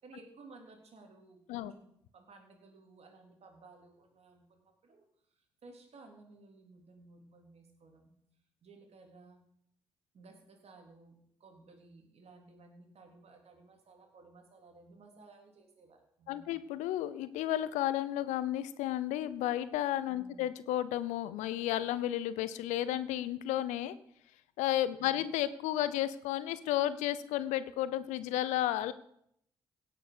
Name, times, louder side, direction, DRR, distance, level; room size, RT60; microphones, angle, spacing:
voice 1, 0.0-5.1 5.4-8.1 8.6-9.4 10.1-16.6 20.1-20.5 25.0-25.3, right 3 dB, 60° right, 3 dB, 3.3 m, -57 dB
voice 2, 16.3-23.9 24.6-28.9, left 13 dB, 75° left, 15 dB, 0.7 m, -32 dB
17.0 x 6.8 x 6.8 m, 0.72 s
hypercardioid pair, 40°, 12 cm